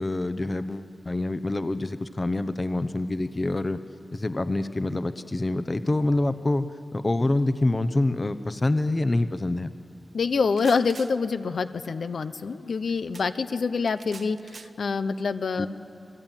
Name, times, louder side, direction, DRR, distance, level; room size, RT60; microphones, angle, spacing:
voice 1, 0.0-3.8 4.1-6.7 6.9-9.7 15.6-15.7, left 2 dB, 30° left, 11 dB, 0.9 m, -26 dB
voice 2, 10.1-15.7, left 5 dB, 85° left, 10 dB, 0.9 m, -26 dB
sound 1, 10.4-11.1 13.1-13.3 13.9-14.7, right 4 dB, 65° right, 1.0 m, -45 dB
28.5 x 21.0 x 9.1 m, 2.7 s
wide cardioid pair, 105°, 0 cm